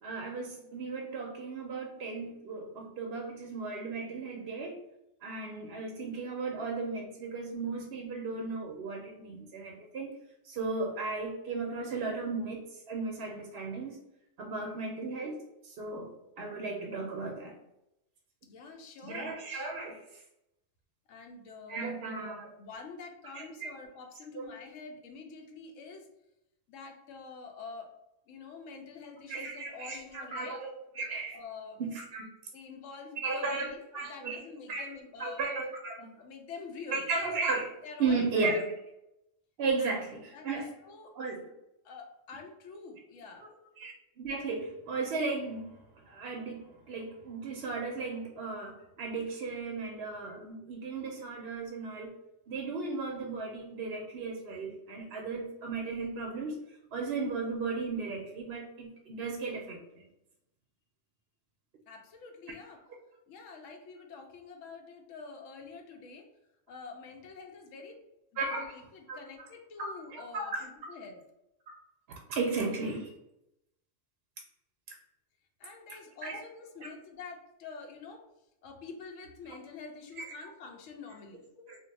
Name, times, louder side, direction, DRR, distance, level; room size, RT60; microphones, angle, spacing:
voice 1, 0.0-4.8 5.2-10.1 10.4-14.0 14.4-15.4 15.6-16.1 16.4-17.5 19.0-20.0 21.7-22.5 23.3-23.7 24.3-24.5 29.3-31.4 31.8-32.3 33.2-33.7 33.9-34.4 34.7-34.9 35.2-36.1 36.9-37.7 38.0-38.7 39.6-40.7 41.1-41.4 43.4-43.5 43.8-45.8 46.0-52.2 52.5-56.5 56.9-59.8 68.4-68.8 69.1-69.2 69.8-70.6 72.3-73.1 75.9-76.4 76.8-76.9 80.2-80.3 81.7-81.8, right 3 dB, 65° right, 1 dB, 0.7 m, -35 dB
voice 2, 18.5-19.4 21.1-21.9 22.6-26.1 26.7-27.9 28.3-30.6 31.3-31.8 32.5-35.4 36.2-37.1 37.8-38.5 39.8-39.9 40.3-41.1 41.8-43.8 61.9-62.8 63.3-66.3 66.7-68.0 68.3-71.2 75.6-78.3 78.6-81.7, left 4 dB, 80° left, 3 dB, 1.0 m, -47 dB
2.6 x 2.1 x 3.9 m, 0.86 s
omnidirectional pair, 1.3 m